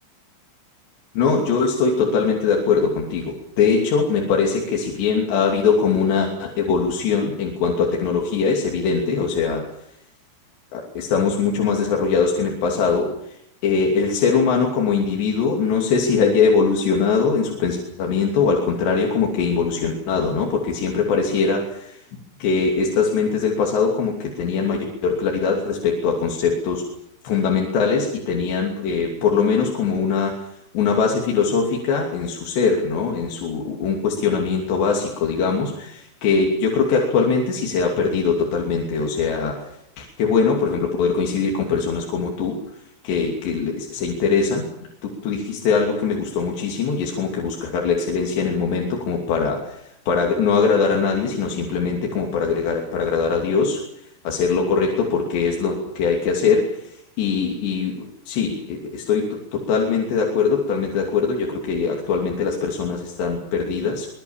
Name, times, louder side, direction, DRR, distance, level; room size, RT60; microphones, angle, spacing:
voice 1, 1.1-9.7 10.7-13.4 13.6-21.6 22.4-26.8 27.2-30.5 30.7-39.7 40.0-42.6 43.0-44.7 45.0-53.8 54.2-64.1, left 5 dB, 60° left, 0 dB, 4.8 m, -21 dB
25.0 x 21.0 x 7.3 m, 0.76 s
omnidirectional pair, 5.8 m